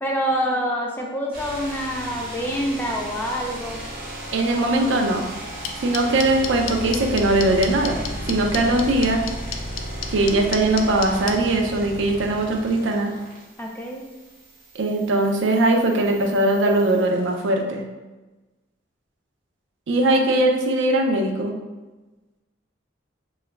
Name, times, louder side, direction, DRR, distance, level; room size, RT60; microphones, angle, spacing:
voice 1, 0.0-3.8 4.6-4.9 13.6-14.0 20.1-20.6, equal, 10° left, -1 dB, 0.4 m, -27 dB
sound 1, 1.3-17.5, equal, 50° right, 1.0 m, -35 dB
voice 2, 4.3-5.2 5.8-8.0 8.2-9.2 10.1-13.1 14.7-17.8 19.9-21.5, right 2 dB, 70° right, 2 dB, 0.4 m, -20 dB
sound 2, 5.6-11.3, left 9 dB, 85° left, 0.3 m, -29 dB
2.9 x 2.3 x 3.2 m, 1.2 s
head